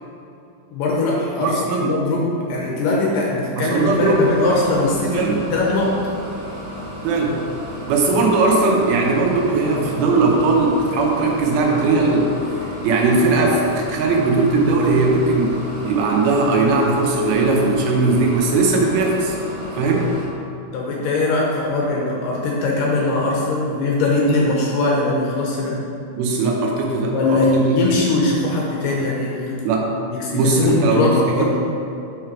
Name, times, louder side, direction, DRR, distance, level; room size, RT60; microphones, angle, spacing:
voice 1, 0.7-6.0 20.7-25.8 27.1-29.6 30.1-31.5, left 2 dB, 75° left, -2 dB, 2.2 m, -21 dB
voice 2, 1.4-1.9 3.6-4.3 5.1-5.4 7.0-7.4 7.9-12.3 12.6-19.4 19.7-20.1 26.1-27.6 29.6-29.9 30.3-31.5, right 3 dB, 80° right, -1 dB, 2.7 m, -19 dB
sound 1, 3.7-20.3, equal, 60° right, 1.9 m, -34 dB
6.3 x 5.9 x 4.4 m, 2.7 s
omnidirectional pair, 4.4 m